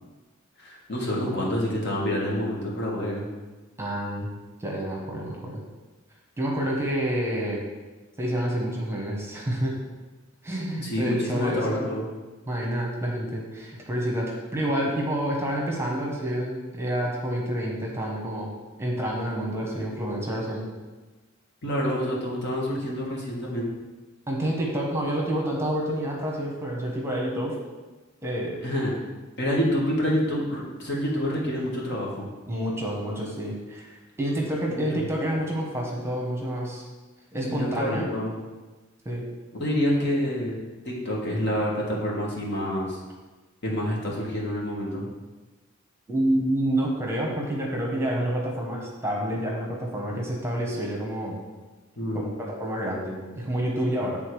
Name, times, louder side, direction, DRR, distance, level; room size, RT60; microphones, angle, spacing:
voice 1, 0.6-3.3 10.8-12.1 21.6-23.7 28.6-29.0 29.4-32.3 34.7-35.0 37.4-38.3 39.6-40.6 40.8-43.0 43.6-45.1 52.0-52.3, equal, 55° left, -3 dB, 1.6 m, -27 dB
voice 2, 3.8-4.3 4.6-5.6 6.4-7.6 8.2-9.8 10.4-11.8 12.5-18.5 18.8-20.7 24.3-27.5 28.2-28.6 32.5-33.9 34.2-36.8 37.3-38.0 39.0-39.2 46.1-51.4 52.1-54.2, right 1 dB, 15° right, -2 dB, 1.1 m, -28 dB
8.8 x 3.6 x 4.7 m, 1.2 s
head